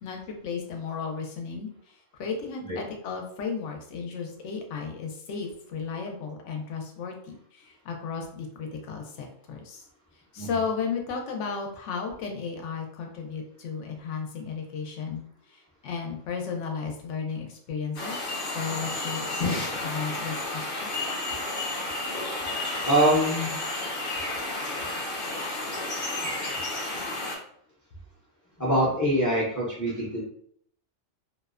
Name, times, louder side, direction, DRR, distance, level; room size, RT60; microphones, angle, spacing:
voice 1, 0.0-9.8 10.3-18.2 18.4-21.0, left 5 dB, 80° left, 2 dB, 0.9 m, -34 dB
sound 1, 18.0-27.4, left 2 dB, 55° left, 0.8 m, -31 dB
voice 2, 22.8-23.5 28.6-30.2, right 1 dB, 25° left, -6 dB, 0.4 m, -24 dB
2.6 x 2.1 x 2.3 m, 0.65 s
omnidirectional pair, 1.2 m